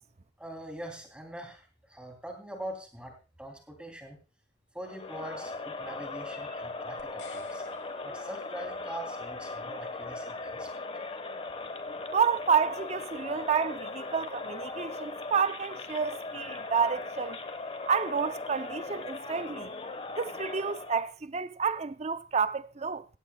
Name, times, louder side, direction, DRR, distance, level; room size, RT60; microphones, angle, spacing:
voice 1, 0.4-4.2 4.7-7.6 8.0-10.7, right 1 dB, 5° right, 3.2 m, -43 dB
Crowd, 4.8-21.1, left 3 dB, 30° left, 1.3 m, -39 dB
sound 1, 7.0-9.3, left 4 dB, 60° left, 1.7 m, -51 dB
voice 2, 12.1-17.4 17.9-19.7 20.2-23.0, right 6 dB, 35° right, 0.6 m, -29 dB
17.5 x 15.5 x 2.3 m
head